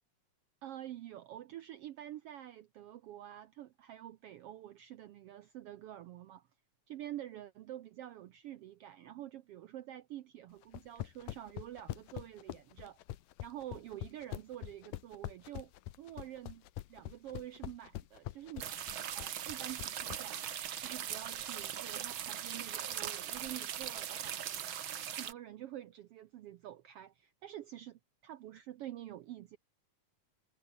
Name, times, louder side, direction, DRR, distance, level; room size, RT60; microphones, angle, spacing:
voice 1, 0.6-6.5 6.9-13.0 13.4-15.7 16.0-18.7 19.1-20.4 20.8-24.4 25.1-29.6, right 12 dB, 85° right, 1.3 m, -47 dB
sound 1, 10.6-20.2, left 15 dB, 85° left, 2.6 m, -43 dB
sound 2, 18.6-25.3, right 9 dB, 55° right, 1.6 m, -40 dB
omnidirectional pair, 3.6 m